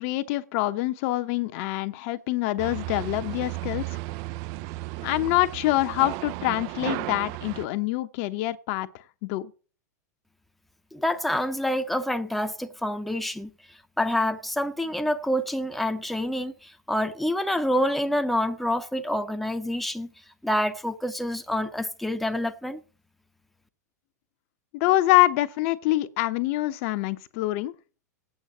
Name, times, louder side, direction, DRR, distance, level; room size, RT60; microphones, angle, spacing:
voice 1, 0.0-3.9 5.0-8.9 9.2-9.5 24.7-27.7, left 17 dB, 50° left, 0.9 m, -25 dB
sound 1, 2.6-7.7, right 19 dB, 45° right, 0.5 m, -34 dB
voice 2, 10.9-13.5 14.0-20.1 20.4-22.8, left 1 dB, ahead, 0.8 m, -27 dB
8.8 x 7.2 x 8.8 m
figure-of-eight pair, 95°, 9 cm